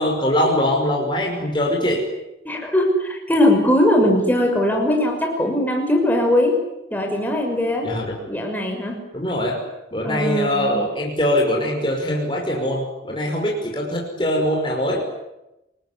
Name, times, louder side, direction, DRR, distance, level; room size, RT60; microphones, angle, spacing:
voice 1, 0.0-2.1 7.8-8.3 9.1-9.6 9.9-15.0, left 1 dB, 25° left, 0 dB, 5.6 m, -22 dB
voice 2, 2.4-6.6 6.9-7.9 8.3-9.1 10.0-10.8, left 1 dB, 10° left, 1 dB, 6.0 m, -20 dB
28.0 x 20.5 x 9.8 m, 0.92 s
head